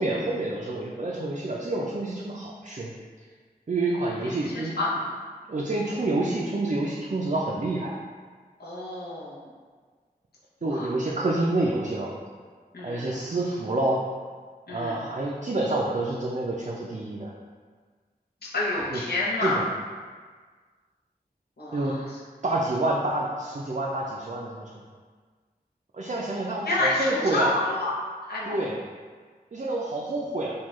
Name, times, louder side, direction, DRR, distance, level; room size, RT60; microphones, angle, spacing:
voice 1, 0.0-2.9 3.7-4.7 5.5-7.9 10.6-12.1 12.8-14.0 14.7-17.3 18.9-19.0 19.4-19.6 21.7-21.9 22.4-24.8 25.9-27.5 28.4-28.7 29.5-30.5, right 2 dB, 45° right, -4 dB, 0.4 m, -28 dB
voice 2, 4.2-5.0 8.6-9.4 10.6-10.9 12.7-13.1 14.7-15.0 18.4-19.6 21.6-22.0 26.6-27.9 28.2-28.6, left 2 dB, 75° left, -7 dB, 0.7 m, -29 dB
3.6 x 2.2 x 3.0 m, 1.5 s
wide cardioid pair, 45°, 17 cm